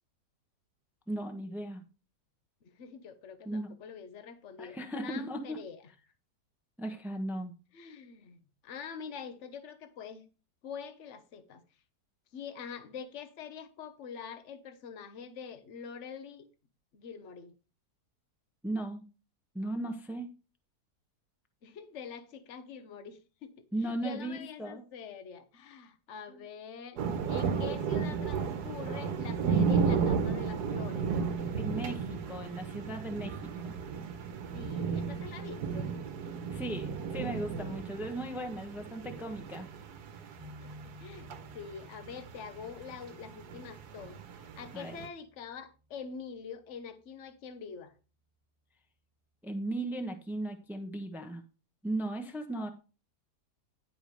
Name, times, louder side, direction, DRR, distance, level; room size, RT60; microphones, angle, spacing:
voice 1, 1.1-1.8 3.4-3.7 4.6-5.6 6.8-7.5 18.6-19.0 19.5-20.3 23.7-24.8 26.3-26.4 31.5-33.4 33.6-33.8 36.5-39.7 44.7-44.9 49.4-51.4 51.8-52.7, right 1 dB, ahead, 0.9 m, -36 dB
voice 2, 2.6-5.8 7.7-10.3 10.6-11.6 12.3-16.4 16.9-17.5 21.6-27.0 27.3-31.3 34.5-35.9 37.8-38.0 40.6-47.9, left 6 dB, 50° left, 1.2 m, -45 dB
sound 1, 27.0-45.1, right 6 dB, 80° right, 1.5 m, -34 dB
sound 2, 40.3-46.1, left 1 dB, 25° right, 1.8 m, -54 dB
11.0 x 5.0 x 5.2 m
omnidirectional pair, 1.7 m